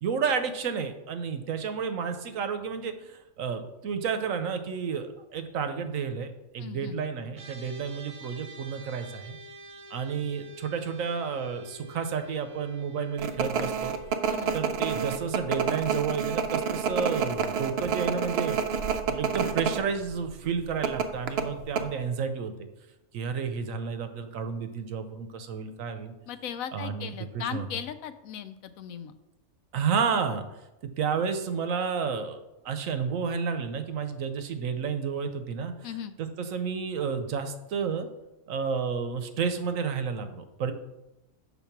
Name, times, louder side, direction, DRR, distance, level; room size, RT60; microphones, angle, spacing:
voice 1, 0.0-9.4 9.9-13.9 14.5-18.6 19.1-22.7 23.1-26.1 26.7-27.7 29.7-30.4 31.0-32.4 32.6-35.7 36.2-38.1 38.5-40.7, right 6 dB, 75° right, 8 dB, 1.1 m, -31 dB
voice 2, 6.6-7.0 14.2-14.5 26.3-29.1 35.8-36.1, left 9 dB, 85° left, 11 dB, 1.0 m, -37 dB
sound 1, 7.3-18.8, equal, 40° right, 1.0 m, -49 dB
sound 2, 13.2-19.8 20.1-20.3 20.8-21.8, right 6 dB, 60° right, 0.7 m, -28 dB
7.1 x 4.0 x 5.8 m, 0.96 s
omnidirectional pair, 1.4 m